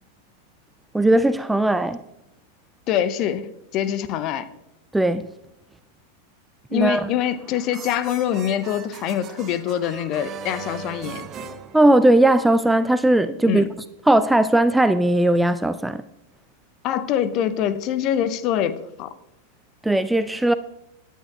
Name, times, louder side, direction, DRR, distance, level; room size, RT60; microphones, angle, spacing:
voice 1, 0.9-2.0 4.9-5.3 6.7-7.1 11.7-13.6 14.1-16.0 19.8-20.5, right 1 dB, 5° right, 13 dB, 0.3 m, -18 dB
voice 2, 2.9-4.5 6.7-11.3 13.4-13.7 16.8-19.1, left 10 dB, 40° left, 13 dB, 0.7 m, -24 dB
sound 1, 7.2-12.5, right 7 dB, 30° right, 0.8 m, -39 dB
17.5 x 10.0 x 2.4 m, 0.88 s
figure-of-eight pair, 90°, 0 cm